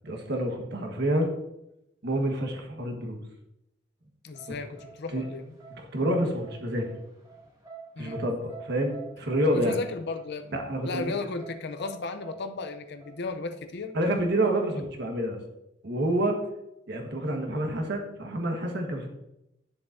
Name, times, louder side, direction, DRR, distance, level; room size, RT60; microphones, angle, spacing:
voice 1, 0.0-1.3 2.0-3.2 5.1-5.2 5.7-6.9 8.0-9.8 10.5-11.1 13.9-15.4 15.8-16.4 16.9-19.1, right 1 dB, 60° right, 3 dB, 1.4 m, -28 dB
voice 2, 4.2-5.5 8.0-8.2 9.5-13.9, left 3 dB, 60° left, 8 dB, 0.6 m, -35 dB
sound 1, 4.3-14.2, right 6 dB, 20° right, 2.0 m, -48 dB
10.0 x 7.0 x 2.6 m, 0.86 s
head